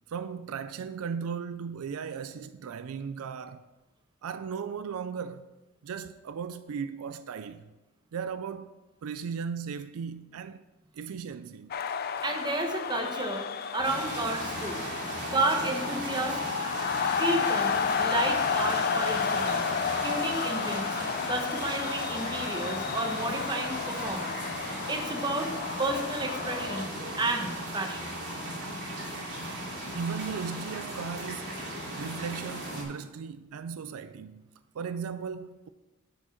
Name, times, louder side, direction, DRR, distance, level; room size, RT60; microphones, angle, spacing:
voice 1, 0.1-3.6 4.2-5.5 5.8-7.6 8.1-10.6 10.9-11.7 29.9-31.6 31.9-34.4 34.7-35.7, right 6 dB, 70° right, 0.4 m, -37 dB
sound 1, 11.7-26.9, left 6 dB, 45° left, 0.4 m, -32 dB
voice 2, 12.2-13.5 13.7-14.8 15.3-16.4 17.2-19.7 20.0-21.0 21.3-24.4 24.9-25.5 25.8-26.9 27.2-28.1, right 2 dB, 20° right, 1.0 m, -31 dB
sound 2, 13.8-32.8, right 1 dB, 50° right, 2.7 m, -37 dB
9.9 x 5.0 x 5.7 m
head